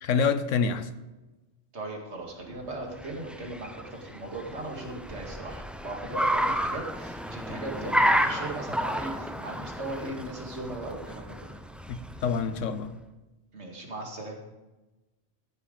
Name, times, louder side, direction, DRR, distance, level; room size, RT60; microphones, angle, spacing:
voice 1, 0.0-0.9 11.9-12.9, left 5 dB, 85° left, 1.1 m, -27 dB
voice 2, 1.7-11.6 13.5-14.4, right 2 dB, 65° right, 2.3 m, -38 dB
Car, 2.6-12.9, equal, ahead, 0.4 m, -31 dB
14.0 x 5.7 x 6.6 m
omnidirectional pair, 1.3 m